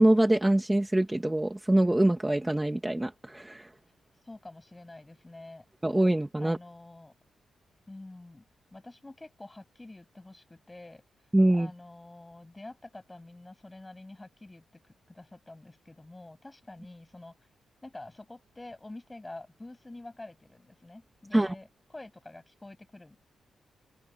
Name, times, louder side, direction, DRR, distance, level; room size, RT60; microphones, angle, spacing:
voice 1, 0.0-3.7 5.8-6.6 11.3-11.7 21.3-21.5, right 1 dB, 10° right, 1.9 m, -24 dB
voice 2, 4.2-5.6 6.4-7.1 7.9-8.4 8.7-11.0 11.5-14.6 15.1-17.4 17.8-23.2, left 2 dB, 15° left, 8.0 m, -47 dB
open air
cardioid pair, 100°, 0 cm